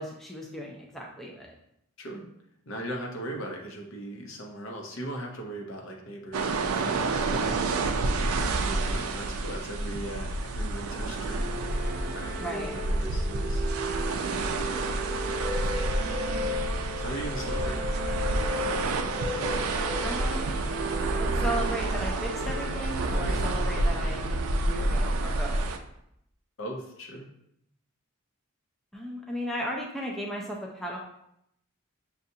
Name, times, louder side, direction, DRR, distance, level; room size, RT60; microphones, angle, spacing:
voice 1, 0.0-1.5 12.4-12.7 20.0-20.6 21.2-24.4 24.6-25.6 28.9-31.0, right 1 dB, ahead, -2 dB, 0.4 m, -35 dB
voice 2, 2.7-11.4 11.9-13.6 17.0-17.8 26.6-27.3, right 1 dB, 60° left, 1 dB, 0.8 m, -39 dB
sound 1, 6.3-25.8, right 2 dB, 80° right, 0.4 m, -29 dB
sound 2, 11.3-24.8, left 1 dB, 40° right, 0.6 m, -36 dB
6.6 x 2.4 x 2.7 m, 0.77 s
head